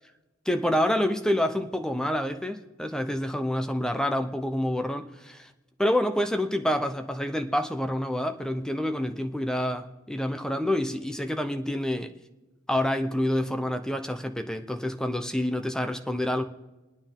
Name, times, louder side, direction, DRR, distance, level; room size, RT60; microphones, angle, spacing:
voice 1, 0.5-5.5 5.8-12.1 12.7-16.4, left 1 dB, 5° left, 7 dB, 0.7 m, -27 dB
28.5 x 9.5 x 3.7 m, 1.1 s
head